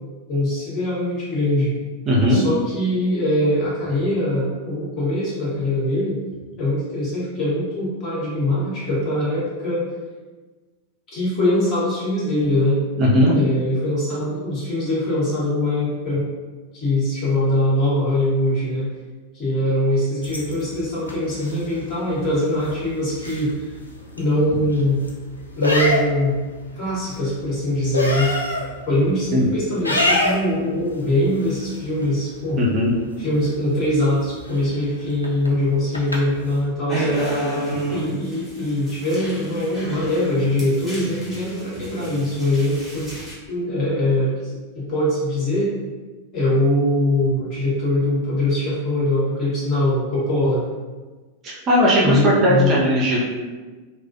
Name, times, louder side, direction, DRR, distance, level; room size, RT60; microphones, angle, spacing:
voice 1, 0.3-1.7 2.3-6.2 6.6-9.9 11.1-12.8 13.3-16.3 16.7-18.9 19.3-23.7 24.2-25.0 25.6-26.4 26.7-28.3 28.9-32.6 33.2-37.1 37.9-43.1 43.5-45.7 46.3-50.6 52.0-52.7, left 1 dB, 35° left, -8 dB, 1.1 m, -22 dB
voice 2, 2.1-2.4 13.0-13.3 29.3-29.5 32.6-32.9 51.4-53.2, equal, 30° right, -4 dB, 0.5 m, -17 dB
sound 1, 20.2-36.7, left 1 dB, 85° left, 0.3 m, -29 dB
sound 2, 36.9-43.3, right 1 dB, 5° left, 0.9 m, -30 dB
2.3 x 2.1 x 2.6 m, 1.3 s
figure-of-eight pair, 90°, 0 cm